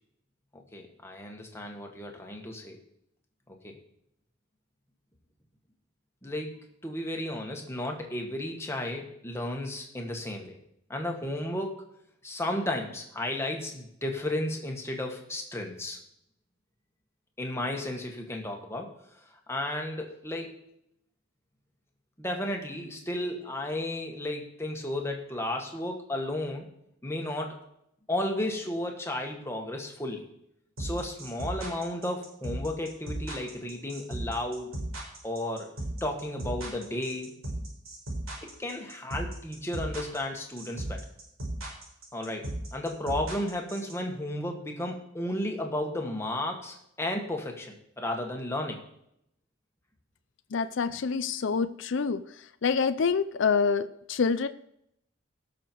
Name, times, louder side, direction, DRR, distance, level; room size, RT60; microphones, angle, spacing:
voice 1, 0.5-2.8 3.6-3.8 6.2-10.6 10.9-11.8 12.2-16.0 17.4-18.9 19.3-20.6 22.2-26.7 27.0-27.6 28.1-30.3 30.8-34.8 35.2-35.7 36.0-37.3 38.4-41.0 42.1-48.8, left 1 dB, 10° left, 2 dB, 1.6 m, -33 dB
sound 1, 30.8-43.9, right 1 dB, 80° right, 5.3 m, -35 dB
voice 2, 50.5-52.2 52.6-54.5, left 5 dB, 60° left, 11 dB, 0.5 m, -26 dB
17.5 x 6.7 x 4.6 m, 0.75 s
head